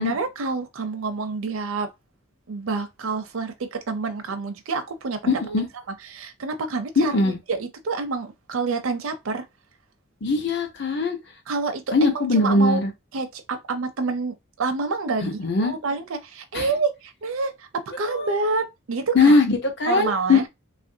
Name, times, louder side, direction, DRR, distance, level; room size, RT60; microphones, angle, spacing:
voice 1, 0.0-1.9 2.5-5.3 6.0-9.5 11.5-12.8 13.1-17.7 18.0-19.4 19.9-20.5, right 4 dB, 75° right, 0.5 m, -28 dB
voice 2, 5.3-5.6 7.0-7.4 10.2-11.2 11.9-12.9 15.2-15.7 16.5-16.7 18.1-18.4 19.1-20.5, left 3 dB, 55° left, 0.7 m, -20 dB
3.1 x 2.5 x 2.7 m
head